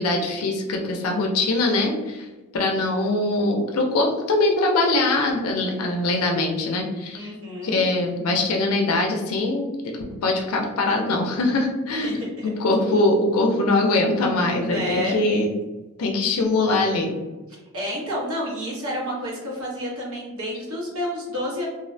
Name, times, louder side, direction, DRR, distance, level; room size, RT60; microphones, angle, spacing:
voice 1, 0.0-2.3 2.5-7.3 7.6-12.2 12.6-15.5 16.0-17.1, left 2 dB, 85° left, 1 dB, 0.4 m, -22 dB
voice 2, 7.1-7.8 12.0-12.5 14.6-15.2 17.7-21.7, equal, 80° right, -4 dB, 0.9 m, -29 dB
2.4 x 2.0 x 2.5 m, 1.2 s
head